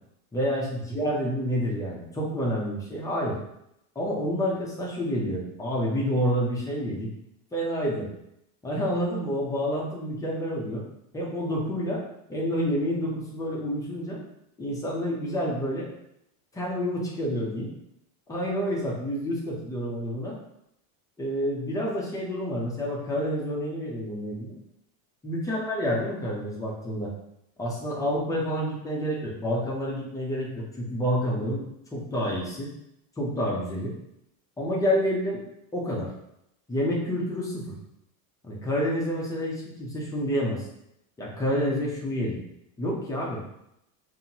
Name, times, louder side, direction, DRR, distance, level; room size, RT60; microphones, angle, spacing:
voice 1, 0.3-3.4 4.0-7.1 7.5-8.1 8.6-10.8 11.1-12.0 12.3-14.2 14.6-15.9 16.5-17.7 18.3-20.4 21.2-24.6 25.2-27.1 27.6-31.6 31.9-32.7 33.2-33.9 34.6-35.4 35.7-36.1 36.7-37.7 38.4-40.6 41.2-42.4 42.8-43.4, equal, 10° left, -4 dB, 0.5 m, -28 dB
5.5 x 2.7 x 2.8 m, 0.80 s
cardioid pair, 170°, 41 cm